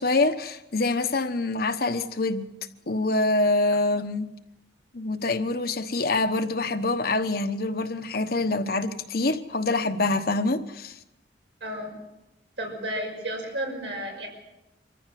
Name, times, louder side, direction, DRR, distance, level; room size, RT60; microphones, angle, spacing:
voice 1, 0.0-2.5 2.9-4.3 4.9-10.9, left 2 dB, 55° left, 1.2 m, -25 dB
voice 2, 11.6-12.0 12.6-14.3, right 1 dB, 80° right, 6.0 m, -32 dB
25.0 x 14.5 x 7.7 m
head